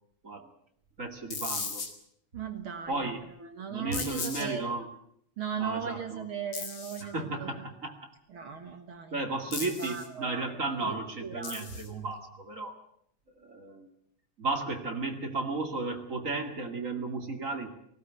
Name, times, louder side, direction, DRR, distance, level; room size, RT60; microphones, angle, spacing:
voice 1, 1.0-1.8 2.9-3.2 3.7-4.9 5.6-6.2 7.0-8.1 9.1-12.7 13.4-13.9 14.4-17.7, right 3 dB, 30° right, 4 dB, 2.4 m, -34 dB
sound 1, 1.3-1.9 3.9-4.5 6.5-7.0 9.5-10.1 11.4-11.9, left 5 dB, 55° left, 3.5 m, -36 dB
voice 2, 2.3-3.1 3.4-4.7 5.4-7.6 8.3-9.2 9.8-11.6, right 7 dB, 50° right, 6 dB, 2.1 m, -38 dB
18.5 x 17.0 x 9.3 m, 0.70 s
omnidirectional pair, 3.4 m